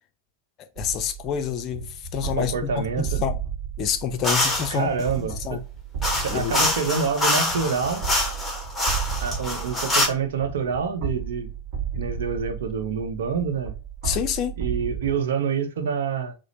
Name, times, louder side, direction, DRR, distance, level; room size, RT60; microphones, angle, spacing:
voice 1, 0.8-1.9 2.1-2.7 3.0-3.3 3.8-4.9 5.2-5.6 6.3-6.7 14.0-14.6, left 8 dB, 35° left, 0.5 m, -27 dB
sound 1, 0.8-15.1, right 7 dB, 45° right, 1.2 m, -33 dB
voice 2, 2.4-3.2 4.7-5.6 6.2-8.1 9.2-11.5 12.0-13.7 14.6-16.3, right 6 dB, 60° right, 0.7 m, -27 dB
sound 2, 4.2-4.8 6.0-10.1, left 1 dB, 5° left, 1.0 m, -25 dB
4.8 x 2.0 x 2.8 m
figure-of-eight pair, 90°, 0 cm